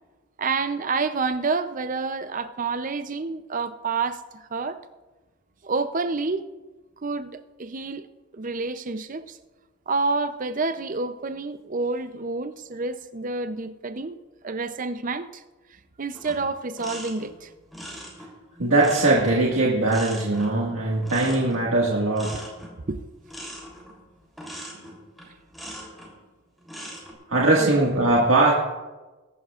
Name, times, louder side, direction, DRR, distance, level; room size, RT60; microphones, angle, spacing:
voice 1, 0.4-4.8 5.6-6.5 7.0-8.1 8.3-9.4 9.9-14.2 14.4-15.4 16.0-17.5 22.9-23.0 27.6-27.8, right 4 dB, 35° right, 0.6 m, -28 dB
sound 1, 16.1-26.1 26.6-27.1, equal, ahead, 3.3 m, -41 dB
voice 2, 18.6-22.3 27.3-28.5, right 2 dB, 70° right, 1.8 m, -20 dB
22.0 x 11.5 x 2.5 m
head